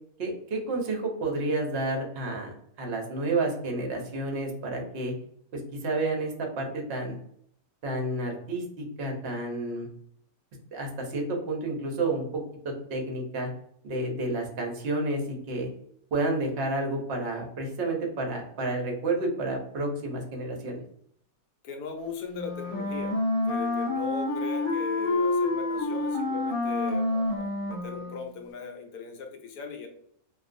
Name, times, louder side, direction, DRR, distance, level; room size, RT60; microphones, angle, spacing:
voice 1, 0.2-5.1 5.5-7.2 7.8-9.9 10.7-13.5 13.8-15.7 16.1-20.8, right 2 dB, 55° right, 1 dB, 0.7 m, -30 dB
voice 2, 21.6-23.1 23.4-29.9, left 5 dB, 75° left, 3 dB, 1.0 m, -38 dB
Wind instrument woodwind instrument, 22.3-28.3, left 2 dB, 50° left, 0.6 m, -28 dB
2.5 x 2.3 x 2.5 m, 0.68 s
omnidirectional pair, 1.7 m